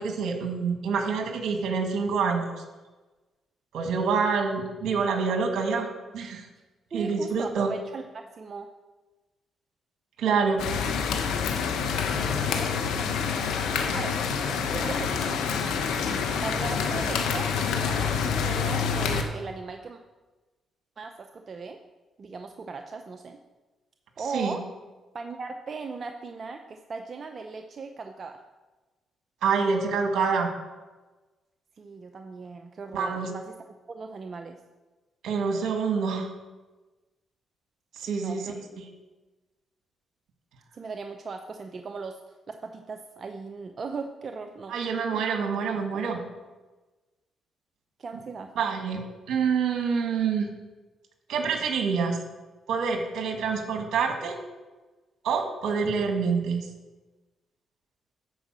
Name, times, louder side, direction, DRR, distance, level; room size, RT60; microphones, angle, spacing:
voice 1, 0.0-2.5 3.7-5.9 6.1-6.4 6.9-7.7 10.2-10.6 24.3-24.6 29.4-30.5 32.9-33.3 35.2-36.3 37.9-38.9 44.7-46.2 48.6-49.0 49.3-50.5 51.3-52.2 52.7-54.4 55.2-56.7, right 5 dB, 75° right, 4 dB, 1.8 m, -26 dB
voice 2, 6.9-8.7 12.1-13.3 13.9-14.2 14.7-15.4 16.4-20.0 21.0-21.8 22.2-23.4 24.2-24.6 25.1-28.4 31.8-34.6 38.0-38.7 40.7-42.2 42.5-44.8 45.1-45.2 48.0-48.5, right 4 dB, 45° right, 5 dB, 0.7 m, -38 dB
sound 1, 10.6-19.2, left 6 dB, 90° left, 1.0 m, -27 dB
11.0 x 4.9 x 7.5 m, 1.2 s
cardioid pair, 75°, 0 cm